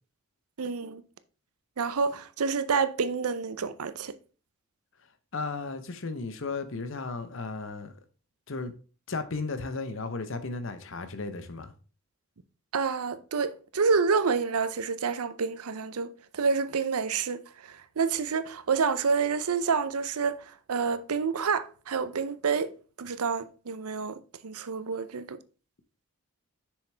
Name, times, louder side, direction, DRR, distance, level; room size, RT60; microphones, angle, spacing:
voice 1, 0.6-1.0 1.8-4.1 12.7-22.7 23.0-25.4, right 5 dB, 85° right, 0.6 m, -28 dB
voice 2, 5.3-8.0 8.5-8.7 9.1-11.7, left 3 dB, 60° left, 0.8 m, -34 dB
6.6 x 6.3 x 3.4 m
head